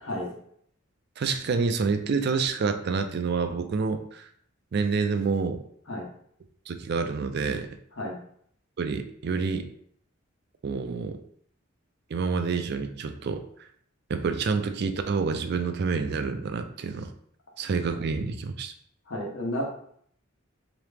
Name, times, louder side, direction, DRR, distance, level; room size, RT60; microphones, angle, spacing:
voice 1, 0.0-0.4 5.9-6.1 8.0-8.2 19.1-19.7, left 1 dB, 85° left, -1 dB, 1.1 m, -32 dB
voice 2, 1.2-4.3 4.7-5.6 6.7-7.7 8.8-9.7 10.6-11.2 12.1-13.7 14.1-17.1 17.6-18.7, right 4 dB, 60° right, 8 dB, 0.4 m, -28 dB
3.6 x 3.0 x 3.4 m, 0.64 s
head